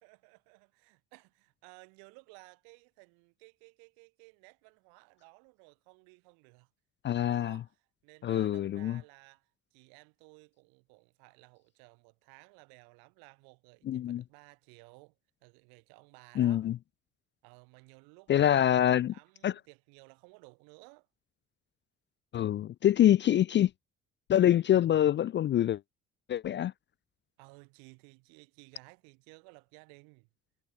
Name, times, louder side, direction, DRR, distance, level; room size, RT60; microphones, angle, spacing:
voice 1, 0.0-6.7 7.1-15.2 15.4-16.7 17.4-18.6 19.1-21.1 27.4-30.3, right 38 dB, 65° right, 5.7 m, -57 dB
voice 2, 7.0-7.6 8.2-9.0 13.9-14.2 16.4-16.8 18.3-19.1 19.4-19.5 22.3-23.7 24.3-25.8 26.3-26.7, left 11 dB, 30° left, 0.4 m, -25 dB
figure-of-eight pair, 45°, 39 cm